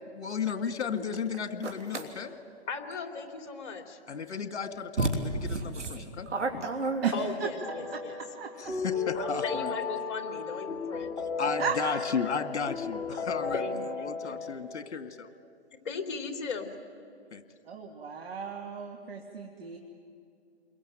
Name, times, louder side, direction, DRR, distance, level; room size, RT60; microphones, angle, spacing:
voice 1, 0.1-2.3 4.1-6.7 8.6-9.7 11.4-15.3 17.3-17.4, left 6 dB, 70° left, 10 dB, 2.0 m, -34 dB
sound 1, 1.6-2.1 4.3-4.4 5.0-7.5, right 2 dB, 85° right, 3.2 m, -31 dB
voice 2, 2.7-4.0 7.1-8.2 9.1-11.1 13.5-14.4 15.8-16.7, left 5 dB, 45° left, 6 dB, 3.3 m, -37 dB
voice 3, 7.0-7.5 7.9-8.7 11.6-12.1 17.7-19.8, right 6 dB, 55° right, 3 dB, 2.5 m, -35 dB
sound 2, 7.6-14.6, left 4 dB, 10° left, 3.1 m, -35 dB
29.0 x 22.0 x 9.2 m, 2.4 s
hypercardioid pair, 140°, 35 cm